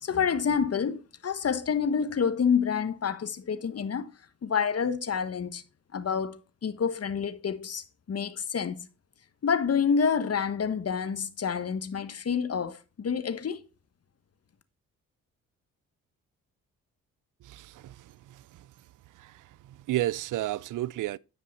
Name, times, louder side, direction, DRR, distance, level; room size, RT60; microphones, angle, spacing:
voice 1, 0.0-4.1 4.4-5.6 5.9-8.8 9.4-13.6, left 6 dB, 40° left, 1.1 m, -28 dB
voice 2, 17.4-18.7 19.1-21.2, right 15 dB, 55° right, 0.5 m, -33 dB
9.9 x 5.5 x 4.1 m
hypercardioid pair, 45°, 38 cm